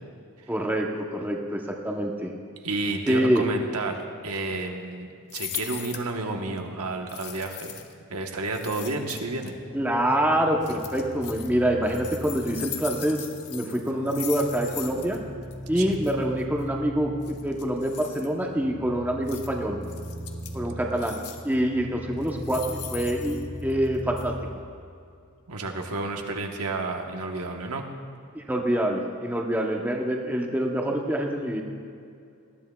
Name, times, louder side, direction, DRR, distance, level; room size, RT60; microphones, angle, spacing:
voice 1, 0.5-2.3 3.1-3.4 9.7-15.2 15.7-19.8 20.5-24.3 28.3-31.6, right 1 dB, 10° right, 0 dB, 0.8 m, -26 dB
voice 2, 2.6-7.7 8.1-9.5 15.7-15.8 25.5-27.8, right 3 dB, 80° right, 2 dB, 1.1 m, -31 dB
sound 1, 5.3-6.1 7.1-7.9 8.5-9.5 10.6-11.5 11.8-15.2 15.4-15.5 15.8-16.1 17.2-18.3 19.3-19.5 19.8-20.6 21.0-21.5 22.2-23.9 24.2-24.3, left 10 dB, 85° left, 0.9 m, -39 dB
sound 2, 9.5-24.5, equal, 35° right, 1.4 m, -39 dB
19.5 x 13.0 x 2.3 m, 2.4 s
head